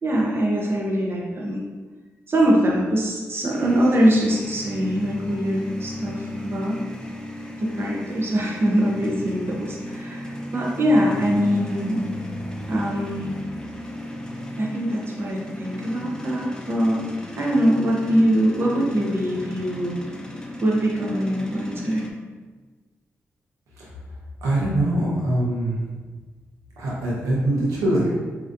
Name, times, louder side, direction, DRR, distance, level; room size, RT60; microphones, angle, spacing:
voice 1, 0.0-1.6 2.3-6.8 7.6-12.0 12.7-13.3 14.6-17.0 17.3-20.0 20.6-22.0, equal, 50° right, -2 dB, 0.9 m, -23 dB
sound 1, 3.5-22.1, left 1 dB, 15° left, 0.7 m, -35 dB
voice 2, 23.7-24.2 24.4-25.9 26.8-28.1, right 1 dB, 90° right, -5 dB, 0.9 m, -23 dB
4.7 x 2.9 x 2.6 m, 1.3 s
supercardioid pair, 50°, 5 cm